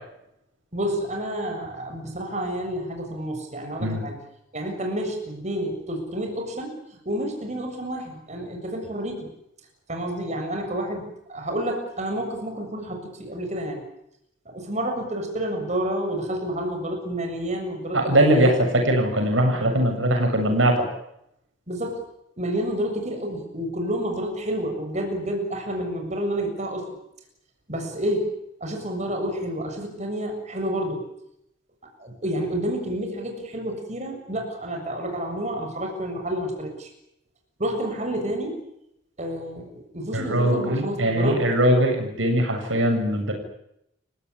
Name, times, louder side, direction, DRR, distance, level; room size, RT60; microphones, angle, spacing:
voice 1, 0.7-4.2 4.5-9.3 9.9-13.8 14.5-18.6 21.7-22.0 22.4-26.9 27.7-28.3 28.6-31.0 32.0-36.9 37.6-38.6 39.2-41.4, right 1 dB, 40° right, 3 dB, 7.2 m, -29 dB
voice 2, 17.9-20.8 40.1-43.3, right 1 dB, 90° right, 4 dB, 7.7 m, -21 dB
29.5 x 17.0 x 9.9 m, 0.79 s
head